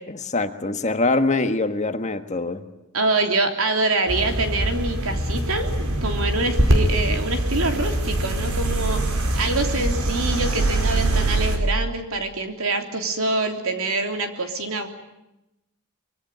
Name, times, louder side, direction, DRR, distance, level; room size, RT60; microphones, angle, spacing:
voice 1, 0.1-2.6, left 2 dB, 35° left, 8 dB, 1.5 m, -24 dB
voice 2, 2.9-5.7 6.0-14.9, right 2 dB, 70° right, 5 dB, 3.5 m, -25 dB
sound 1, 4.1-11.6, right 1 dB, 85° right, 4.8 m, -23 dB
24.5 x 23.5 x 9.2 m, 0.93 s
head